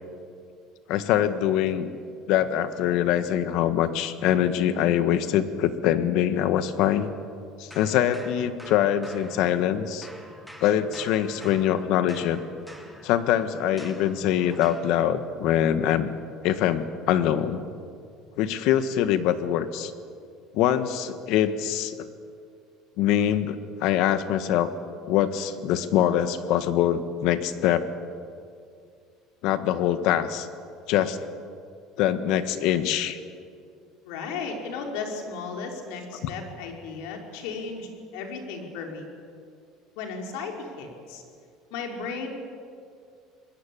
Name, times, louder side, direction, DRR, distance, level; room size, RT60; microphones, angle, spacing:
voice 1, 0.9-1.9 2.3-7.1 7.6-10.1 10.6-12.4 13.0-16.1 16.4-17.7 18.4-19.9 20.5-22.1 23.0-24.7 25.1-27.9 29.4-30.5 30.9-31.2 32.0-33.2 36.2-36.3, left 10 dB, 65° left, 11 dB, 1.5 m, -24 dB
sound 1, 7.7-9.8 10.0-14.9, equal, ahead, 2.3 m, -47 dB
voice 2, 34.1-39.1 40.0-41.2 41.7-42.3, left 4 dB, 80° left, 2 dB, 4.8 m, -35 dB
24.5 x 20.5 x 8.6 m, 2.3 s
cardioid pair, 160°, 0 cm